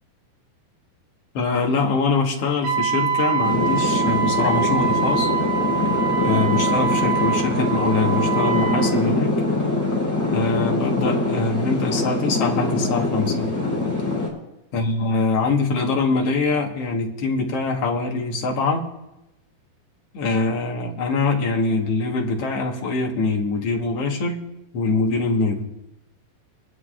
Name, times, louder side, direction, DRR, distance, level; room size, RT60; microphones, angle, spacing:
voice 1, 1.3-5.3 6.2-9.3 10.3-13.5 14.7-18.9 20.1-24.4 24.7-25.7, left 3 dB, 55° left, 0 dB, 1.9 m, -23 dB
Wind instrument woodwind instrument, 2.6-8.9, right 7 dB, 80° right, 3.8 m, -24 dB
sound 1, 3.4-14.3, left 2 dB, 5° left, 2.8 m, -23 dB
21.5 x 11.5 x 2.5 m, 0.92 s
omnidirectional pair, 4.5 m